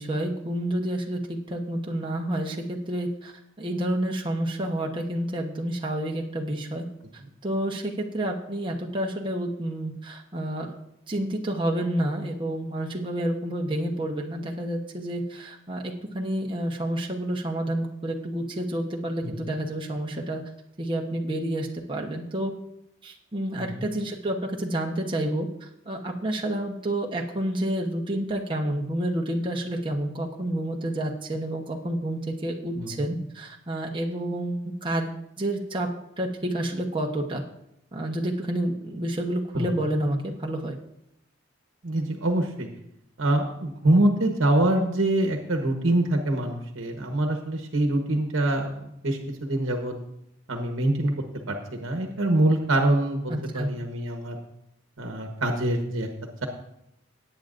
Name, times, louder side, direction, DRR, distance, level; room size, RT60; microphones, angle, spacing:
voice 1, 0.0-6.8 7.4-10.7 11.1-20.4 20.8-22.5 23.0-35.9 36.2-37.4 37.9-40.7 53.3-53.7, right 1 dB, 25° right, 0 dB, 1.0 m, -29 dB
voice 2, 32.7-33.1 39.5-39.7 41.8-42.7 43.2-49.9 50.5-51.1 51.5-54.4 55.0-56.1, right 1 dB, 70° right, 3 dB, 1.2 m, -25 dB
18.0 x 8.9 x 2.6 m, 0.81 s
head